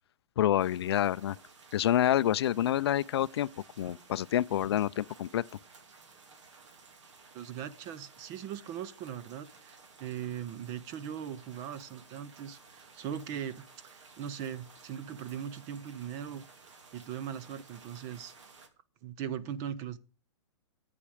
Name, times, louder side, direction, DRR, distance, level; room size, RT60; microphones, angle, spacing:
voice 1, 0.4-1.4 1.7-3.5 3.8-5.4, left 11 dB, 55° left, 0.4 m, -27 dB
sound 1, 0.6-18.7, right 4 dB, 75° right, 2.4 m, -56 dB
voice 2, 7.3-16.5 16.9-18.3 19.0-20.0, right 9 dB, 20° right, 0.4 m, -40 dB
10.0 x 8.5 x 4.9 m
hypercardioid pair, 165°, 16 cm